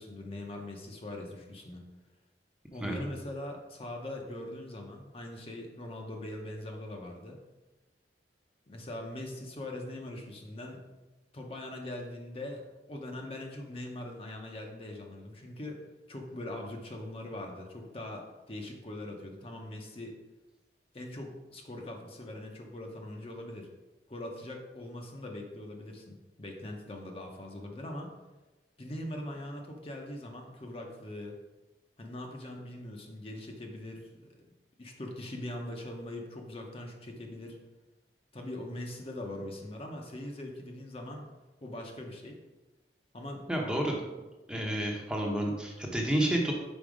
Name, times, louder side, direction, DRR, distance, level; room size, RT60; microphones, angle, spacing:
voice 1, 0.0-1.9 2.7-7.4 8.7-10.8 11.3-15.8 16.1-20.2 20.9-23.7 24.1-28.1 28.8-31.4 32.0-34.4 34.8-37.6 38.3-41.3 41.6-42.4 43.1-43.5, left 1 dB, 30° left, 1 dB, 0.7 m, -41 dB
voice 2, 43.5-44.0 44.5-46.5, right 1 dB, 5° right, -1 dB, 0.7 m, -30 dB
5.3 x 4.1 x 4.9 m, 1.1 s
head